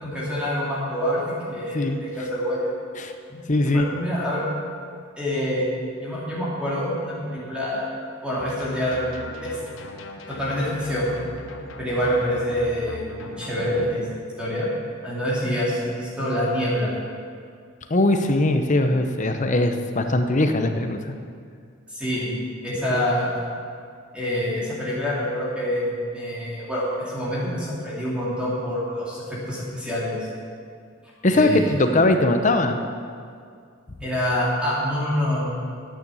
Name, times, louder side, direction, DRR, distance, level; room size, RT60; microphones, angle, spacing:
voice 1, 0.0-2.7 3.3-4.4 5.2-5.7 6.0-7.9 8.2-9.0 9.4-9.6 10.3-11.1 11.8-14.0 14.4-14.7 15.0-16.9 21.9-22.3 22.6-23.3 24.1-30.3 31.3-31.8 34.0-35.5, equal, 5° right, -8 dB, 2.7 m, -26 dB
voice 2, 3.5-3.9 17.9-21.2 22.9-23.0 31.2-32.8, left 2 dB, 35° left, 6 dB, 0.8 m, -20 dB
sound 1, 8.4-14.0, left 2 dB, 65° left, 1.0 m, -40 dB
10.5 x 8.9 x 7.0 m, 2.2 s
head